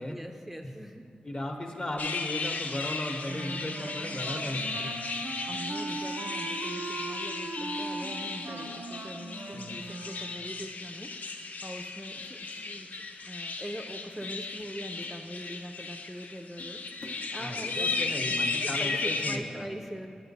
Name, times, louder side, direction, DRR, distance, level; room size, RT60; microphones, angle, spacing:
voice 1, 0.1-1.1 5.2-18.2 18.6-20.2, equal, 5° right, 4 dB, 0.3 m, -42 dB
voice 2, 1.2-4.9 9.5-9.8 17.4-19.6, left 1 dB, 35° left, 3 dB, 0.8 m, -36 dB
sound 1, 2.0-19.4, left 4 dB, 70° left, 0.4 m, -35 dB
Wind instrument woodwind instrument, 3.3-10.6, right 3 dB, 90° right, 0.4 m, -39 dB
sound 2, 11.8-12.7 13.0-13.3 13.7-13.9 14.2-15.7 16.1-16.2 16.6-17.9, left 1 dB, 85° left, 0.8 m, -52 dB
8.7 x 5.2 x 4.0 m, 2.6 s
cardioid pair, 60°, 3 cm